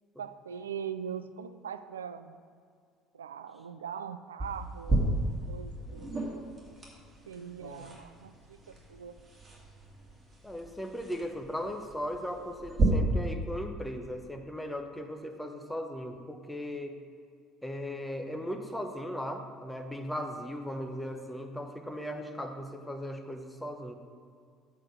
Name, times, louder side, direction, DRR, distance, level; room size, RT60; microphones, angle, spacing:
voice 1, 0.2-2.4 3.1-5.2 5.5-6.1 7.3-9.2, right 7 dB, 80° right, 12 dB, 0.3 m, -41 dB
sound 1, 4.4-12.8, right 2 dB, 20° right, 2.2 m, -35 dB
voice 2, 10.4-17.0 17.6-23.9, equal, 5° left, 4 dB, 0.9 m, -38 dB
7.6 x 4.7 x 6.3 m, 2.2 s
figure-of-eight pair, 60°, 0 cm